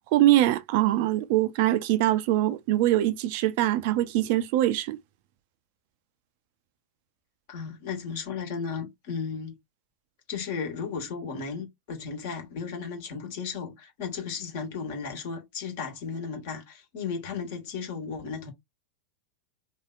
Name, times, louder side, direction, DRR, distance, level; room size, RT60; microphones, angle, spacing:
voice 1, 0.0-5.0, right 14 dB, 45° right, 0.3 m, -23 dB
voice 2, 7.5-9.5 10.3-18.5, left 5 dB, 50° left, 1.3 m, -35 dB
3.1 x 2.7 x 2.4 m
figure-of-eight pair, 90°, 0 cm